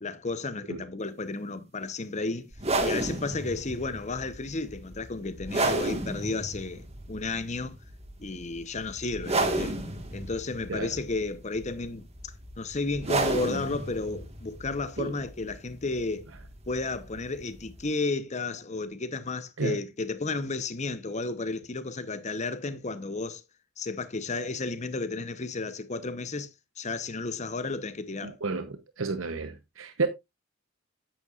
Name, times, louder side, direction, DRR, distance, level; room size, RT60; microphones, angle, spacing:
voice 1, 0.0-2.5 2.8-7.8 8.2-9.7 10.1-16.3 16.7-23.4 23.8-26.5 26.8-28.4, left 3 dB, 35° left, 0.9 m, -33 dB
sound 1, 2.5-17.8, right 2 dB, 30° right, 1.7 m, -33 dB
voice 2, 28.2-30.1, right 4 dB, 85° right, 0.9 m, -31 dB
9.4 x 8.9 x 2.5 m
head